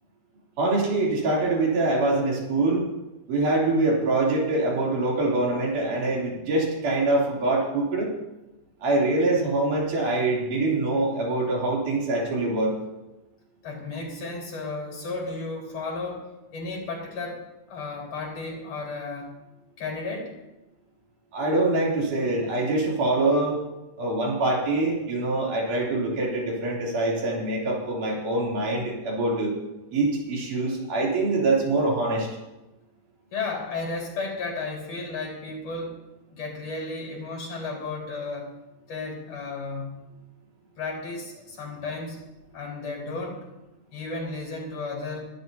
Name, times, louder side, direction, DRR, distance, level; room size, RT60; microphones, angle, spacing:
voice 1, 0.6-2.8 3.3-8.1 8.8-12.7 21.3-23.6 24.0-29.5 29.9-32.3, right 2 dB, 80° right, -4 dB, 4.7 m, -24 dB
voice 2, 13.6-19.4 19.8-20.4 33.3-38.5 38.9-40.0 40.8-42.2 42.5-43.5 43.9-45.2, left 3 dB, 55° left, 0 dB, 5.6 m, -34 dB
24.0 x 13.5 x 2.8 m, 0.99 s
omnidirectional pair, 3.6 m